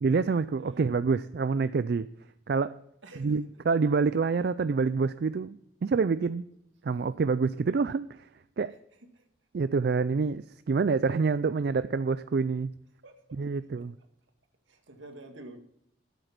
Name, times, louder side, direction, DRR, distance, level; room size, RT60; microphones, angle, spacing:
voice 1, 0.0-2.1 2.5-2.8 3.2-5.6 5.8-6.5 6.8-8.3 8.6-8.7 9.5-12.7 13.4-13.9, right 4 dB, 50° right, 13 dB, 0.3 m, -27 dB
voice 2, 3.0-3.4 9.2-9.3 13.0-13.1 14.7-15.6, right 1 dB, 70° right, 4 dB, 2.0 m, -47 dB
13.0 x 8.2 x 5.9 m, 0.77 s
head